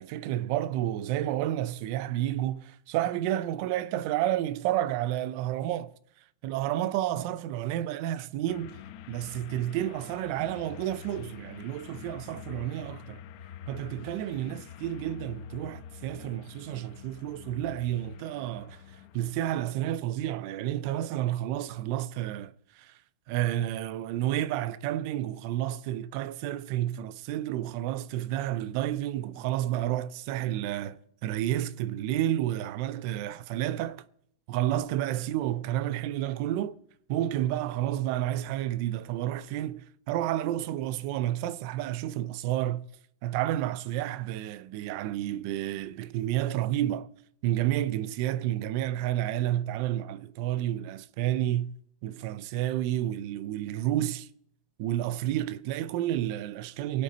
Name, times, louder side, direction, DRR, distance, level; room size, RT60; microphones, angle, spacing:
voice 1, 0.0-5.9 6.4-8.8 9.1-13.2 13.7-18.8 19.1-22.9 23.3-34.0 34.5-36.8 37.1-42.8 43.2-47.1 47.4-51.8 52.0-54.3 54.8-57.0, right 13 dB, 40° right, 0.5 m, -30 dB
sound 1, 8.5-19.9, left 8 dB, 40° left, 1.0 m, -46 dB
23.5 x 8.3 x 4.2 m
supercardioid pair, 170°, 3 cm